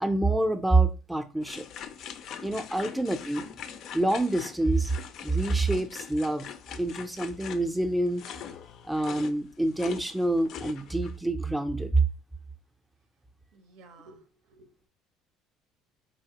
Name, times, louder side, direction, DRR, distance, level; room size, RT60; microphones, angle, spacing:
voice 1, 0.0-1.7 2.4-3.5 3.9-4.9 5.2-6.5 6.8-8.2 8.9-12.0, right 2 dB, 5° right, 0.5 m, -26 dB
sound 1, 1.4-11.2, left 8 dB, 60° left, 0.4 m, -42 dB
voice 2, 13.5-14.9, right 3 dB, 80° right, 0.7 m, -54 dB
4.0 x 2.9 x 2.8 m
cardioid pair, 115°, 0 cm